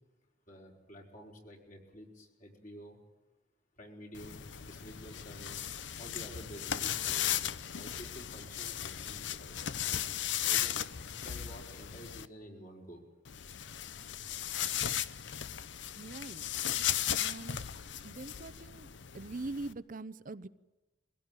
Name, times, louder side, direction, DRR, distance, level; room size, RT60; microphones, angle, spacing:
voice 1, 0.5-3.0 3.8-5.6 6.0-9.8 10.4-13.0, equal, 45° left, 0 dB, 5.0 m, -51 dB
sound 1, 4.1-12.3 13.3-19.7, left 10 dB, 70° left, 0.7 m, -36 dB
voice 2, 16.0-16.4 17.2-17.6 18.0-18.9 19.1-20.5, right 2 dB, 45° right, 15 dB, 0.7 m, -42 dB
23.5 x 17.0 x 9.1 m, 1.1 s
head